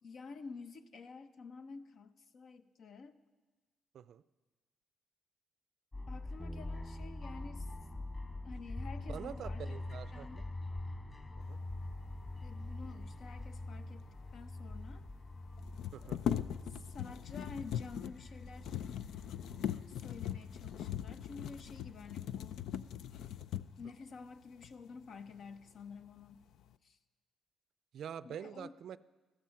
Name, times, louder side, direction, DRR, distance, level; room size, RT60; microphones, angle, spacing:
voice 1, 0.0-3.2 6.1-7.7 8.4-10.5 12.4-15.1 16.0-16.4 16.7-18.8 19.9-22.6 23.8-26.4 26.8-27.0 28.2-28.7, left 4 dB, 60° left, 10 dB, 0.9 m, -50 dB
sound 1, 5.9-23.4, left 2 dB, 30° left, 3.7 m, -45 dB
Bass guitar, 6.4-12.6, right 1 dB, ahead, 0.6 m, -53 dB
voice 2, 9.1-10.4 11.4-11.6 15.9-16.2 27.9-29.0, right 9 dB, 70° right, 16 dB, 0.4 m, -45 dB
sound 2, 14.1-14.2 14.4-14.5 15.6-23.9 24.6-24.7 25.2-25.8 26.2-26.7, left 10 dB, 80° left, 0.5 m, -40 dB
14.5 x 13.5 x 5.8 m, 1.3 s
cardioid pair, 90°, 0 cm